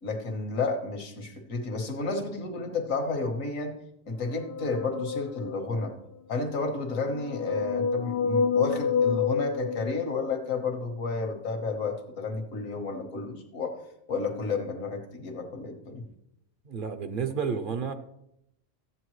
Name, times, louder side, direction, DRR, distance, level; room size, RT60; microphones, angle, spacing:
voice 1, 0.0-3.7 4.1-5.9 6.3-13.8 14.1-16.0, left 3 dB, 80° left, 4 dB, 1.7 m, -31 dB
sound 1, 4.3-5.9 6.8-10.6, left 5 dB, 65° left, 0.7 m, -29 dB
voice 2, 16.6-17.9, right 6 dB, 50° right, 8 dB, 0.8 m, -31 dB
13.5 x 8.2 x 3.1 m, 0.80 s
omnidirectional pair, 1.4 m